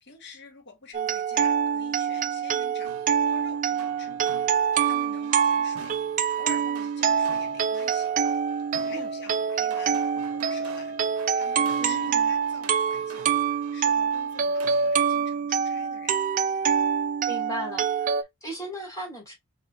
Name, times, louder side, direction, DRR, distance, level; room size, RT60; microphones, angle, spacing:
voice 1, 0.0-2.9 3.2-6.0 6.3-8.1 8.8-16.2, left 4 dB, 55° left, 0.9 m, -47 dB
sound 1, 0.9-18.2, right 7 dB, 35° right, 0.3 m, -25 dB
sound 2, 2.8-15.1, right 5 dB, 80° right, 0.6 m, -48 dB
voice 2, 11.8-12.3 17.3-19.3, equal, 15° left, 2.6 m, -37 dB
5.5 x 2.6 x 2.6 m
head